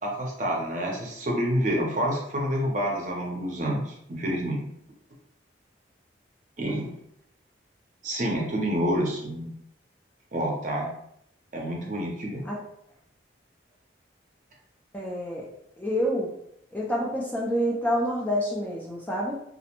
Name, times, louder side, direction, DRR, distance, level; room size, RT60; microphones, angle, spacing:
voice 1, 0.0-4.6 6.6-6.9 8.0-9.5 10.3-10.9 11.5-12.4, equal, 40° right, -1 dB, 0.6 m, -28 dB
voice 2, 14.9-15.5 15.8-16.3 16.7-19.3, equal, 10° left, -4 dB, 0.3 m, -27 dB
2.4 x 2.1 x 2.8 m, 0.73 s
head